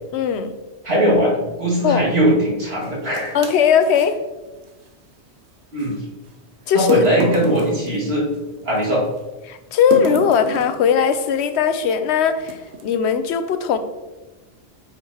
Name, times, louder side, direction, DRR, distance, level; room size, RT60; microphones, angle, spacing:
voice 1, 0.1-0.5 1.8-2.0 3.3-4.2 6.7-7.0 9.5-13.8, left 7 dB, 85° left, 10 dB, 0.9 m, -18 dB
voice 2, 0.8-3.3 5.7-5.9 6.7-8.3 8.6-9.0, equal, 70° right, -5 dB, 2.3 m, -19 dB
sound 1, 2.8-4.1 5.8-5.9 6.7-8.9 9.9-10.9 11.7-11.9 12.4-12.9, right 3 dB, 85° right, 1.0 m, -29 dB
8.5 x 5.2 x 2.8 m, 1.1 s
omnidirectional pair, 1.1 m